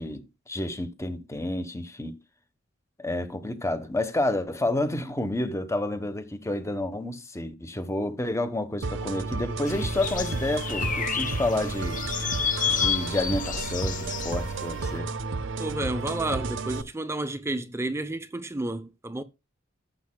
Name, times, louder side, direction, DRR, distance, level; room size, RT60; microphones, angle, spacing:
voice 1, 0.0-2.2 3.0-12.0 12.7-15.1, left 1 dB, 15° left, 1.0 m, -30 dB
sound 1, 8.8-16.8, right 3 dB, 65° right, 0.7 m, -32 dB
sound 2, 9.7-14.9, left 6 dB, 40° left, 0.8 m, -30 dB
voice 2, 15.6-19.2, right 2 dB, 15° right, 0.6 m, -31 dB
14.0 x 7.4 x 2.2 m
head